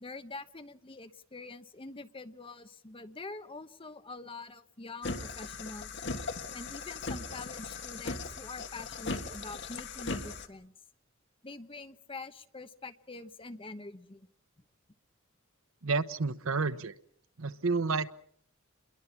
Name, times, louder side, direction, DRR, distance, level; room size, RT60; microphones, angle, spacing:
voice 1, 0.0-5.9 6.5-10.7 11.4-14.3, left 3 dB, 25° left, 10 dB, 1.0 m, -45 dB
sound 1, 5.0-10.5, left 3 dB, 60° left, 1.7 m, -38 dB
voice 2, 15.8-16.9 17.4-18.1, right 4 dB, 85° right, 13 dB, 1.0 m, -30 dB
28.0 x 22.5 x 5.8 m, 0.63 s
head